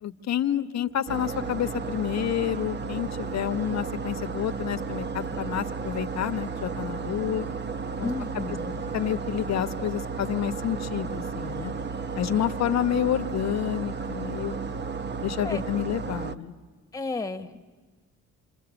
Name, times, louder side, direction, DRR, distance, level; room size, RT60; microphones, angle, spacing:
voice 1, 0.0-7.5 8.0-8.1 8.9-11.7 12.1-14.6 15.2-16.5, left 10 dB, 60° left, 9 dB, 1.1 m, -29 dB
sound 1, 1.1-16.4, right 5 dB, 35° right, 0.8 m, -33 dB
voice 2, 8.0-8.8 15.4-15.6 16.9-17.7, left 3 dB, 10° left, 6 dB, 1.4 m, -33 dB
28.5 x 27.0 x 7.1 m, 1.4 s
cardioid pair, 90°, 30 cm